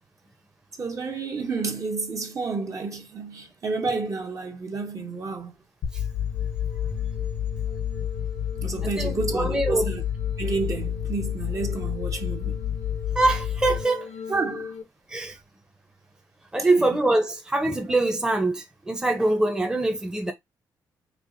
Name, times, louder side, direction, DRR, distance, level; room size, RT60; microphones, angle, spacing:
voice 1, 0.8-5.5 8.6-10.0 10.4-12.7 14.3-14.7 16.6-16.9, right 4 dB, 40° right, 0.9 m, -30 dB
sound 1, 5.8-14.8, left 9 dB, 85° left, 0.8 m, -30 dB
voice 2, 8.8-9.9 13.2-14.1 15.1-15.4 16.5-20.3, right 2 dB, 10° right, 0.7 m, -24 dB
4.6 x 2.4 x 2.5 m
supercardioid pair, 70°, 8 cm